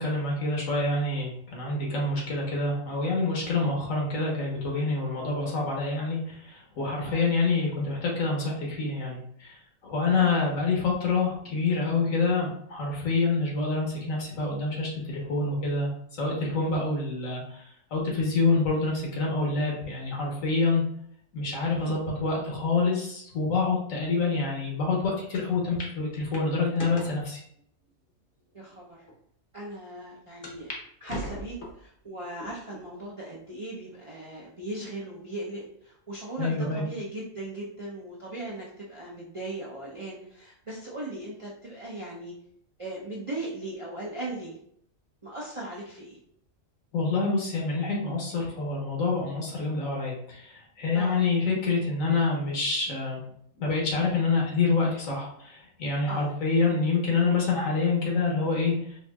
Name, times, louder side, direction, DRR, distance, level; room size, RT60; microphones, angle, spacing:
voice 1, 0.0-9.6 9.8-15.9 16.2-17.6 17.9-20.8 21.3-27.4 36.4-36.8 46.9-53.2 53.6-58.7, left 3 dB, 70° left, -2 dB, 1.4 m, -27 dB
sound 1, 25.3-25.4 25.8-25.9 26.3-27.2 27.9-28.0 28.7-28.8 29.1-29.2 30.4-30.8 31.1-31.9 32.4-32.8 33.4-33.5 34.6-35.0, left 1 dB, 45° left, 0.9 m, -39 dB
voice 2, 28.5-29.0 29.5-30.7 31.0-42.3 42.8-44.6 45.2-46.2 50.9-51.2 56.1-56.3, right 2 dB, 45° right, -5 dB, 0.4 m, -38 dB
4.5 x 2.6 x 2.3 m, 0.67 s
omnidirectional pair, 1.5 m